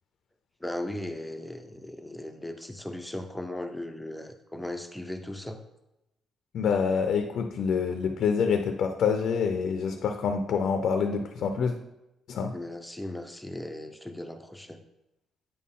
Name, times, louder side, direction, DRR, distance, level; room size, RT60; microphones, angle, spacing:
voice 1, 0.6-5.6 12.5-14.8, left 1 dB, 5° left, 6 dB, 0.6 m, -37 dB
voice 2, 6.5-11.7 12.3-12.5, left 6 dB, 70° left, 6 dB, 0.5 m, -26 dB
8.8 x 4.2 x 3.7 m, 0.91 s
cardioid pair, 90°, 0 cm